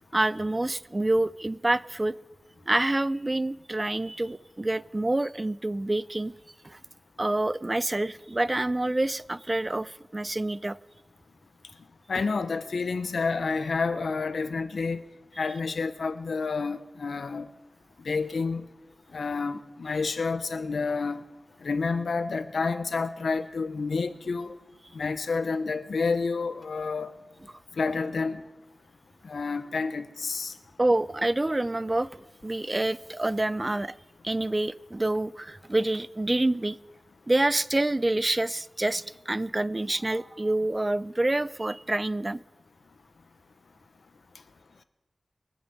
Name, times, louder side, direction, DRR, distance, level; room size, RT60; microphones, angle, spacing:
voice 1, 0.1-2.2 2.7-6.3 6.6-6.8 7.2-10.8 30.8-33.9 34.2-36.8 37.3-42.4, right 2 dB, 30° right, 0.5 m, -27 dB
voice 2, 12.1-15.0 15.4-17.5 18.0-18.7 19.1-21.2 21.6-24.5 24.9-27.1 27.8-28.4 29.2-30.5, left 4 dB, 85° left, 0.8 m, -29 dB
23.0 x 8.1 x 5.3 m
wide cardioid pair, 55°, 0 cm